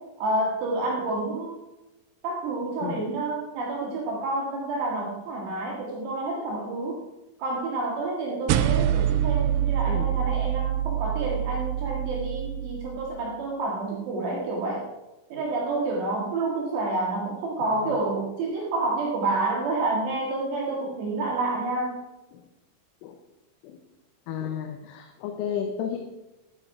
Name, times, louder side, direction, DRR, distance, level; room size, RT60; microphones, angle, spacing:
voice 1, 0.2-1.6 2.2-7.0 7.4-14.9 15.3-22.0, right 2 dB, 65° right, -2 dB, 3.5 m, -29 dB
sound 1, 8.5-13.1, right 11 dB, 90° right, 3.2 m, -26 dB
voice 2, 24.3-26.0, left 8 dB, 85° left, 5 dB, 3.4 m, -33 dB
12.0 x 10.0 x 4.8 m, 0.98 s
omnidirectional pair, 5.6 m